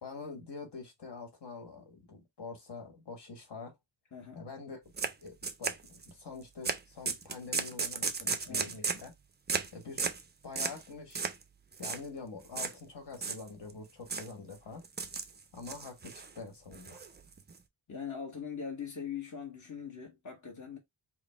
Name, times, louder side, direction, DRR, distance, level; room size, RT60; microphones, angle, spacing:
voice 1, 0.0-3.7 4.3-4.8 5.2-9.1 9.7-10.1 10.4-11.2 11.8-14.8 15.5-17.0, left 4 dB, 60° left, 1.3 m, -45 dB
voice 2, 4.1-4.5 8.4-8.7 17.9-20.8, left 7 dB, 40° left, 1.1 m, -41 dB
sound 1, 5.0-5.1 5.4-6.1 6.6-6.8 7.0-9.1 9.5-9.7 10.0-10.2 10.5-10.8 11.1-11.4 11.7-12.0 12.5-12.7 13.1-13.7 14.1-14.3 14.8-15.3 15.6-16.3 16.7-17.5, right 5 dB, 25° right, 0.3 m, -34 dB
4.9 x 2.0 x 3.3 m
wide cardioid pair, 175°, 46 cm